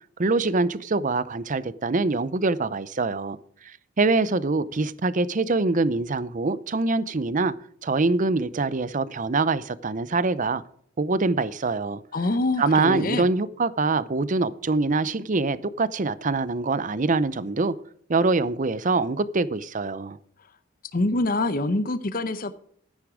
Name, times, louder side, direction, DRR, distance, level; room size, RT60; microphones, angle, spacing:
voice 1, 0.2-3.4 3.6-7.5 7.8-10.6 11.0-12.0 12.6-17.7 18.1-20.2, right 3 dB, 40° right, 0.6 m, -24 dB
voice 2, 12.1-13.3 20.9-22.5, left 2 dB, 45° left, 0.8 m, -25 dB
13.5 x 9.8 x 4.9 m
head